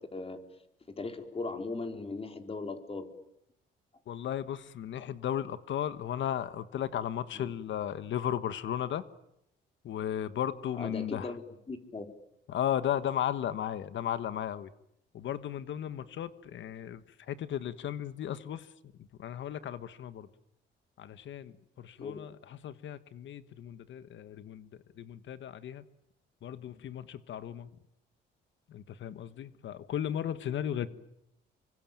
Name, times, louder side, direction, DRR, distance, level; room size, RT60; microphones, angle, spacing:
voice 1, 0.9-3.1 7.3-7.5 10.8-12.1 22.0-22.2 30.8-30.9, left 3 dB, 30° left, 5 dB, 4.1 m, -38 dB
voice 2, 4.1-9.0 9.8-11.3 12.5-14.7 15.1-18.6 19.2-20.3 21.0-24.7 25.0-25.8 26.4-27.7 28.7-30.9, left 10 dB, 70° left, 13 dB, 1.4 m, -35 dB
27.0 x 24.0 x 9.1 m, 0.81 s
cardioid pair, 90°, 20 cm